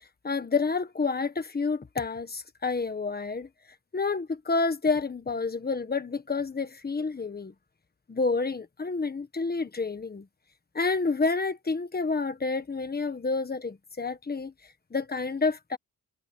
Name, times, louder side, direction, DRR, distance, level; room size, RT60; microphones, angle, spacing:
voice 1, 0.2-3.5 3.9-7.5 8.1-10.3 10.7-14.5 14.9-15.8, left 4 dB, 25° left, 1.5 m, -29 dB
wide cardioid pair, 170°, 35 cm